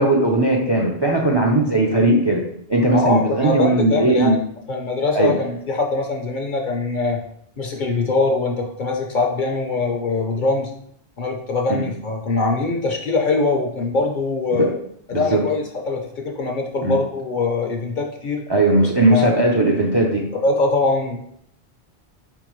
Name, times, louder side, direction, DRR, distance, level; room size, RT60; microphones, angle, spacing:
voice 1, 0.0-2.4 2.7-4.4 5.1-5.3 11.7-11.9 14.5-14.7 15.1-15.4 16.8-16.9 18.5-20.2, right 2 dB, 35° right, 0 dB, 0.4 m, -18 dB
voice 2, 2.9-4.4 4.7-7.2 7.6-10.7 11.2-14.7 15.1-18.4 19.0-19.3 20.4-21.2, left 3 dB, 50° left, 2 dB, 0.7 m, -22 dB
4.5 x 3.6 x 3.0 m, 0.71 s
omnidirectional pair, 1.1 m